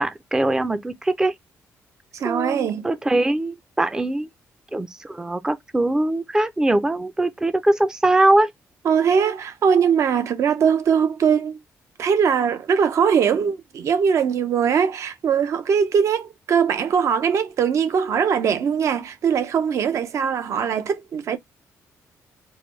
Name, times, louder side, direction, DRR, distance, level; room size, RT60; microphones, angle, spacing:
voice 1, 0.0-1.3 2.2-4.3 4.7-8.5, right 2 dB, 10° right, 0.4 m, -21 dB
voice 2, 2.1-2.9 8.8-11.6 12.0-21.4, right 7 dB, 60° right, 0.6 m, -21 dB
4.6 x 2.2 x 3.0 m
cardioid pair, 95°, 6 cm